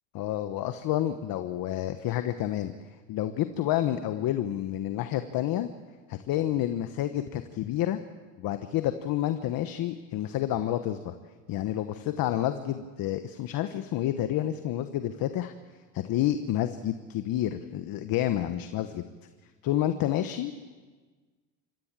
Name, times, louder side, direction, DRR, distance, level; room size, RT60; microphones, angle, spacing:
voice 1, 0.1-2.7 3.1-5.7 6.1-8.0 8.4-11.1 11.5-15.5 15.9-19.0 19.6-20.7, left 12 dB, 55° left, 9 dB, 1.2 m, -29 dB
26.0 x 15.0 x 7.5 m, 1.4 s
supercardioid pair, 105°, 42 cm